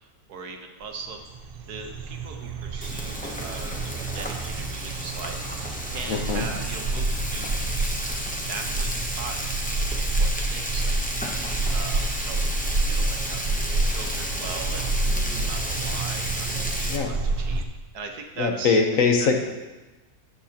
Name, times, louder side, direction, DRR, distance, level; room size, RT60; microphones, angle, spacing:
voice 1, 0.3-1.3 1.7-3.8 4.1-5.4 5.9-7.8 8.3-9.4 10.0-11.0 11.7-12.4 12.9-14.8 15.3-17.6 17.9-18.8 19.2-19.3, right 5 dB, 80° right, 3 dB, 1.6 m, -39 dB
sound 1, 0.8-0.9 1.1-17.6, right 3 dB, 50° right, 0.8 m, -28 dB
Frying (food), 2.8-17.0, equal, 10° left, 0.5 m, -33 dB
voice 2, 6.1-6.5 16.9-17.1 18.4-19.4, left 4 dB, 60° left, 4 dB, 1.3 m, -22 dB
13.0 x 8.7 x 2.9 m, 1.1 s
omnidirectional pair, 1.6 m